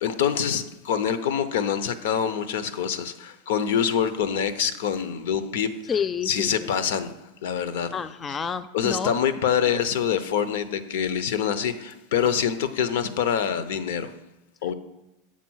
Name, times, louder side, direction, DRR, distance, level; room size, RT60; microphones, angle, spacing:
voice 1, 0.0-5.7 6.2-7.1 7.4-7.9 8.7-14.1 14.6-14.7, left 8 dB, 80° left, 12 dB, 0.6 m, -25 dB
voice 2, 5.9-6.7 7.9-9.2, left 6 dB, 25° left, 12 dB, 0.3 m, -29 dB
7.3 x 3.9 x 6.2 m, 1.0 s
supercardioid pair, 125°, 0 cm